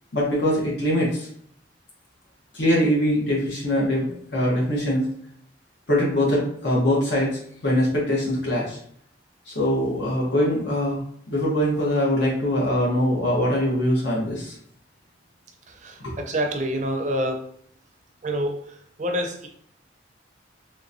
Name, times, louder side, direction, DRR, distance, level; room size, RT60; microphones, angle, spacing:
voice 1, 0.1-1.3 2.5-4.0 4.3-5.1 5.9-7.3 7.6-8.8 9.5-11.0 11.3-14.5 16.0-16.1, equal, 70° left, -5 dB, 1.1 m, -22 dB
voice 2, 15.8-17.4 18.2-18.5 19.0-19.5, equal, 40° right, 3 dB, 0.5 m, -26 dB
3.2 x 2.9 x 2.6 m, 0.63 s
head